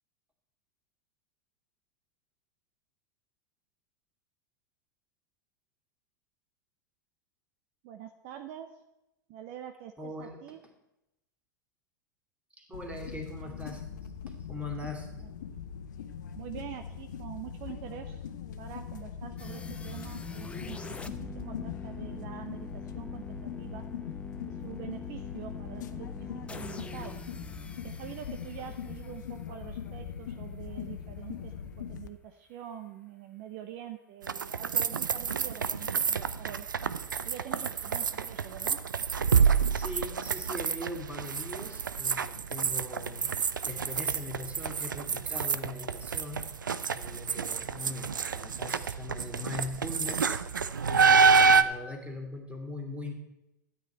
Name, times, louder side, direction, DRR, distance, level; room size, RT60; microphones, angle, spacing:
voice 1, 7.8-8.7 9.3-10.6 15.2-15.3 16.3-18.3 18.6-23.8 24.4-27.2 27.8-36.7 37.2-38.8, right 11 dB, 50° right, 7 dB, 0.9 m, -45 dB
voice 2, 10.0-10.5 12.6-13.9 14.3-15.1 39.7-43.3 43.6-46.5 46.9-50.4 50.9-53.1, left 2 dB, 10° right, 2 dB, 2.7 m, -41 dB
sound 1, 12.7-32.1, left 7 dB, 70° left, 0.8 m, -41 dB
sound 2, 19.4-30.3, left 4 dB, 10° left, 0.8 m, -44 dB
sound 3, 34.2-51.6, right 5 dB, 85° right, 0.5 m, -28 dB
12.5 x 9.5 x 4.5 m, 0.92 s
figure-of-eight pair, 90°, 10 cm